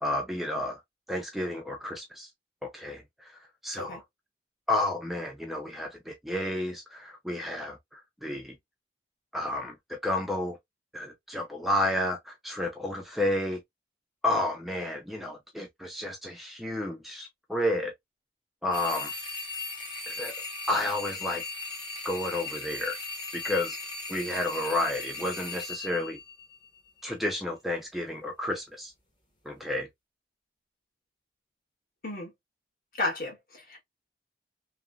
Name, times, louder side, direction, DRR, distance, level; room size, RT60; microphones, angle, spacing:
voice 1, 0.0-0.8 1.1-2.3 2.6-3.3 3.6-4.0 4.7-8.5 9.3-10.6 10.9-13.6 14.2-17.9 18.6-19.1 20.1-20.3 20.7-21.4 22.0-23.0 23.3-23.8 24.1-26.2 27.0-28.9 29.5-29.9, left 1 dB, ahead, 0.3 m, -31 dB
sound 1, 18.7-26.9, left 3 dB, 25° left, 0.8 m, -38 dB
voice 2, 32.9-33.8, left 2 dB, 50° left, 1.2 m, -33 dB
3.1 x 2.0 x 2.2 m
head